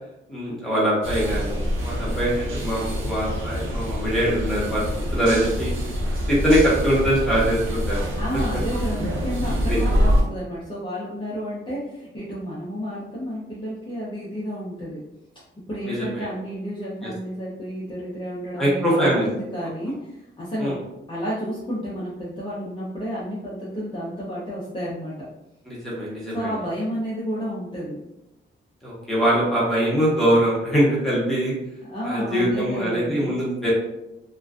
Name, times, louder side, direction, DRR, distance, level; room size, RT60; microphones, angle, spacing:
voice 1, 0.3-5.7 6.3-8.0 9.7-10.0 15.8-16.3 17.0-17.1 18.6-19.2 20.6-20.8 25.7-26.5 28.8-31.5 32.0-33.7, equal, ahead, -7 dB, 0.8 m, -22 dB
sound 1, 1.0-10.2, equal, 75° right, 0.6 m, -25 dB
voice 2, 8.2-15.0 15.7-20.8 21.1-25.3 26.3-28.0 31.8-33.3, equal, 25° left, -8 dB, 0.5 m, -31 dB
2.4 x 2.2 x 2.3 m, 0.90 s
wide cardioid pair, 150°, 21 cm